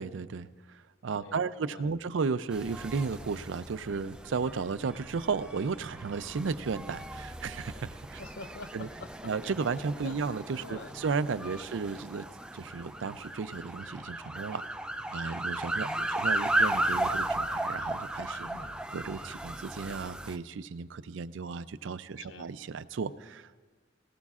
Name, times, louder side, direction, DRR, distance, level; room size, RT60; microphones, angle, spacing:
voice 1, 0.0-8.2 8.7-8.9 9.2-12.2 12.5-14.6 15.1-18.5 18.9-23.6, right 5 dB, 70° right, 14 dB, 0.4 m, -34 dB
voice 2, 1.2-2.0 8.2-9.3 10.0-10.2 10.6-10.9 11.3-11.7 15.8-16.2 18.4-18.8 22.2-22.5, left 4 dB, 65° left, 12 dB, 0.6 m, -46 dB
sound 1, 2.5-20.4, right 1 dB, 5° right, 0.3 m, -35 dB
sound 2, 6.7-20.1, equal, 30° left, 1.6 m, -60 dB
19.0 x 18.5 x 2.4 m, 1.4 s
head